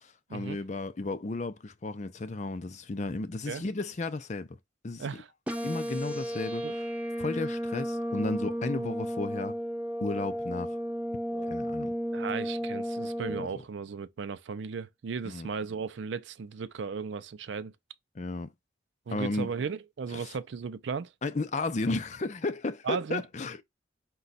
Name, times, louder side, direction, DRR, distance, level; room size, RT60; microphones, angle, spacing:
voice 1, 0.0-4.5 4.8-5.2 5.6-6.8 7.2-9.6 10.0-10.8 11.5-11.9 13.3-13.6 15.2-15.5 18.2-18.5 19.1-19.5 20.1-20.4 21.2-23.6, left 3 dB, 35° left, 0.5 m, -34 dB
voice 2, 5.0-5.3 6.6-6.7 11.3-11.6 12.1-17.7 19.1-21.1 22.8-23.2, right 5 dB, 70° right, 0.4 m, -36 dB
sound 1, 5.5-13.5, equal, 5° right, 0.7 m, -33 dB
4.9 x 2.3 x 4.0 m
head